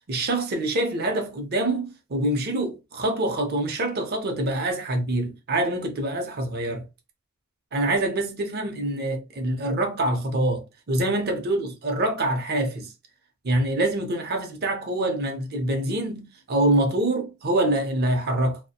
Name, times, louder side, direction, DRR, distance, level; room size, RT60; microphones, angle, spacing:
voice 1, 0.1-6.8 7.7-12.9 13.4-18.6, right 1 dB, 50° right, 0.6 m, -25 dB
2.4 x 2.1 x 2.7 m
head